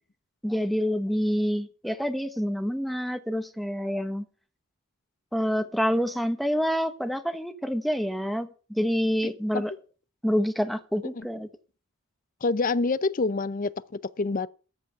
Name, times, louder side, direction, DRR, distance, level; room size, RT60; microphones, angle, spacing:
voice 1, 0.4-4.3 5.3-9.7 10.2-11.5, equal, ahead, 1.0 m, -27 dB
voice 2, 12.4-14.5, left 3 dB, 35° left, 0.5 m, -27 dB
14.0 x 5.1 x 9.0 m
head